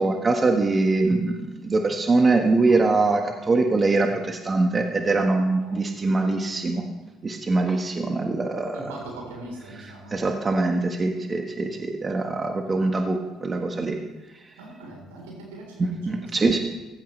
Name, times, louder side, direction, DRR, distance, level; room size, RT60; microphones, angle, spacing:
voice 1, 0.0-6.8 7.2-8.9 10.1-14.0 15.8-16.6, right 3 dB, 30° right, 4 dB, 1.4 m, -23 dB
voice 2, 8.7-10.2 14.6-16.5, right 2 dB, 85° right, -1 dB, 3.9 m, -41 dB
15.0 x 13.0 x 3.3 m, 1.2 s
hypercardioid pair, 60°, 0 cm